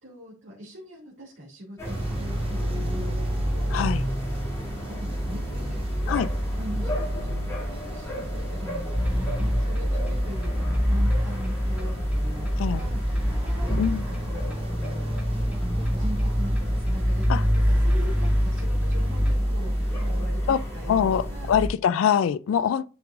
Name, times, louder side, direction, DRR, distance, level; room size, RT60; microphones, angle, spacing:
voice 1, 0.0-4.2 4.9-6.0 6.5-8.9 9.4-21.5, equal, 60° right, 2.2 m, -41 dB
sound 1, 1.8-21.7, equal, 15° left, 2.5 m, -29 dB
sound 2, 1.8-20.3, right 2 dB, 25° right, 0.8 m, -40 dB
voice 2, 3.7-4.0 6.1-6.3 12.6-12.8 13.8-14.0 17.3-17.4 20.5-20.6 20.9-22.9, left 8 dB, 65° left, 0.3 m, -23 dB
sound 3, 8.9-19.3, equal, 5° right, 2.1 m, -26 dB
10.5 x 4.6 x 2.5 m
head